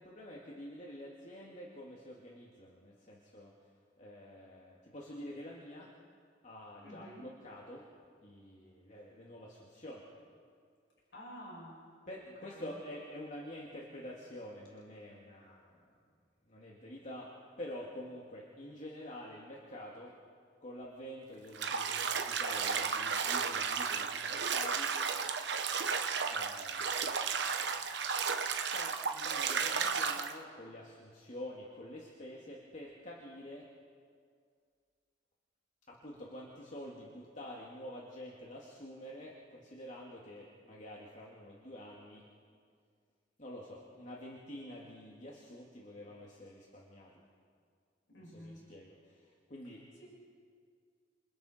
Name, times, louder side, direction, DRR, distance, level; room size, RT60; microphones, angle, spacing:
voice 1, 0.0-3.5 4.0-5.9 6.4-7.9 8.2-10.1 12.1-15.9 16.5-20.1 20.6-24.9 26.3-27.4 28.1-33.7 35.9-42.2 43.4-47.2 48.2-49.8, left 1 dB, 40° left, -3 dB, 2.6 m, -48 dB
voice 2, 6.8-7.3 11.1-11.8 12.4-12.7 48.1-48.7 50.0-50.1, equal, 80° left, -4 dB, 7.3 m, -50 dB
Bathtub (filling or washing), 21.5-30.3, right 6 dB, 65° right, 1.2 m, -33 dB
28.0 x 27.0 x 4.6 m, 2.1 s
head